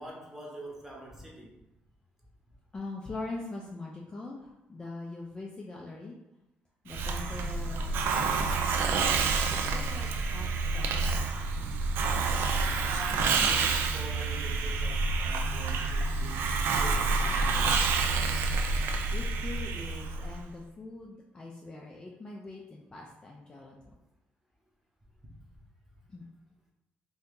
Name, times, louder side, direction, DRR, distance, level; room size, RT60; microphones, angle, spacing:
voice 1, 0.0-1.5 12.8-17.7, right 1 dB, 10° right, -3 dB, 0.9 m, -45 dB
voice 2, 2.7-6.1 6.8-8.9 9.5-11.7 19.1-23.8 26.1-26.2, left 2 dB, 25° left, -2 dB, 0.4 m, -43 dB
Hiss, 6.9-20.4, right 4 dB, 70° right, 0.3 m, -28 dB
2.8 x 2.7 x 3.5 m, 0.91 s
cardioid pair, 120°, 4 cm